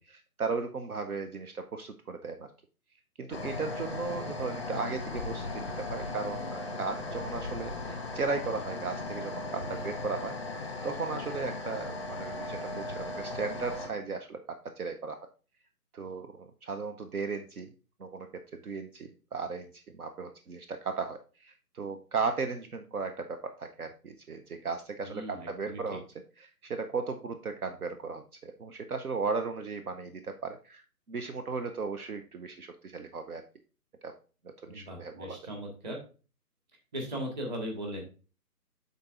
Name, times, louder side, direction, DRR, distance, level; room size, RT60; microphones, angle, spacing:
voice 1, 0.1-2.5 3.2-10.4 10.8-14.4 14.8-15.2 15.9-17.7 18.0-18.3 18.5-19.7 20.0-26.0 26.4-30.8 31.1-33.4 34.0-34.1 34.6-35.4, right 4 dB, 65° right, 7 dB, 0.7 m, -36 dB
sound 1, 3.3-13.9, left 2 dB, 20° left, 0.7 m, -37 dB
voice 2, 25.0-26.0 34.7-36.0 36.9-38.0, equal, 30° right, 0 dB, 1.6 m, -38 dB
12.0 x 4.0 x 2.5 m, 0.36 s
figure-of-eight pair, 150°, 48 cm